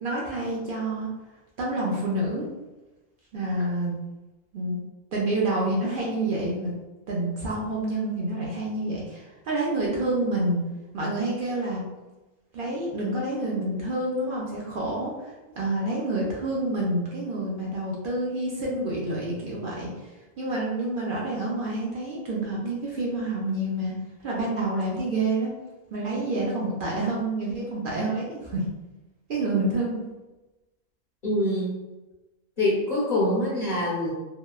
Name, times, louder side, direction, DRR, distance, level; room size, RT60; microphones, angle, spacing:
voice 1, 0.0-1.1 1.6-2.5 3.3-4.0 4.5-4.8 5.1-6.7 7.1-10.6 10.9-11.8 12.5-19.9 20.4-23.9 24.2-25.5 25.9-28.6 29.3-30.0, right 2 dB, 60° right, -4 dB, 0.5 m, -28 dB
voice 2, 31.2-31.7 32.6-34.1, left 1 dB, 45° left, -9 dB, 0.8 m, -24 dB
2.8 x 2.2 x 2.3 m, 1.1 s
omnidirectional pair, 1.4 m